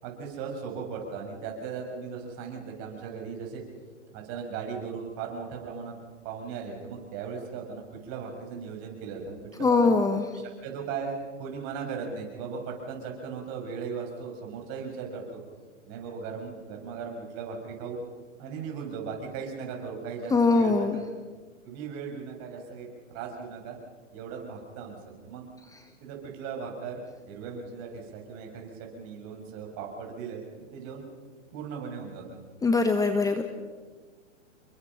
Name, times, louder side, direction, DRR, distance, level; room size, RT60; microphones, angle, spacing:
voice 1, 0.0-3.6 4.1-6.0 6.2-10.0 10.3-15.4 15.9-18.0 18.4-21.1 21.6-23.8 24.1-25.0 25.2-25.5 26.0-30.5 30.7-31.0 31.5-32.4, right 5 dB, 40° right, 1 dB, 7.0 m, -37 dB
voice 2, 9.6-10.2 20.3-21.0 32.6-33.4, left 3 dB, 10° left, 6 dB, 1.3 m, -22 dB
29.5 x 23.0 x 5.9 m, 1.4 s
hypercardioid pair, 120°, 38 cm